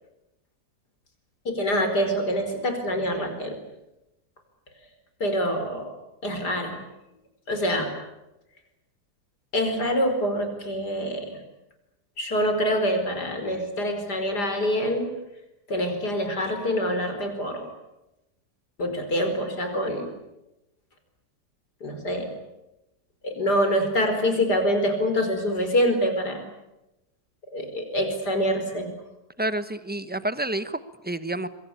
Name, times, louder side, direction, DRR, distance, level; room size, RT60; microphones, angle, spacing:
voice 1, 1.4-3.6 5.2-5.9 6.2-6.8 7.5-7.9 9.5-11.4 12.2-15.1 15.7-17.7 18.8-20.1 21.8-22.3 23.2-26.4 27.5-28.9, equal, 75° left, 6 dB, 5.2 m, -25 dB
voice 2, 29.4-31.5, right 1 dB, 5° right, 13 dB, 0.9 m, -29 dB
26.0 x 23.0 x 8.5 m, 0.93 s
omnidirectional pair, 1.8 m